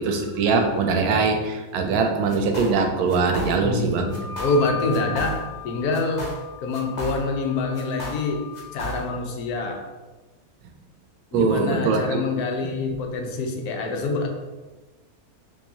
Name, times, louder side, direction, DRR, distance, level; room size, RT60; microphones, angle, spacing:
voice 1, 0.0-4.1 11.3-12.2 12.6-12.8, right 4 dB, 85° right, 4 dB, 1.1 m, -22 dB
sound 1, 2.3-2.8 3.1-3.8 4.1-4.6 4.9-5.6 5.9-7.4 7.7-9.3, right 1 dB, 35° left, 0.8 m, -35 dB
voice 2, 3.6-5.3 5.6-6.3 6.6-8.4 8.7-9.8 11.3-14.3, left 3 dB, 85° left, 3 dB, 1.1 m, -26 dB
Wind instrument woodwind instrument, 4.1-9.0, left 7 dB, 65° left, 0.4 m, -38 dB
4.6 x 2.8 x 2.7 m, 1.2 s
omnidirectional pair, 1.6 m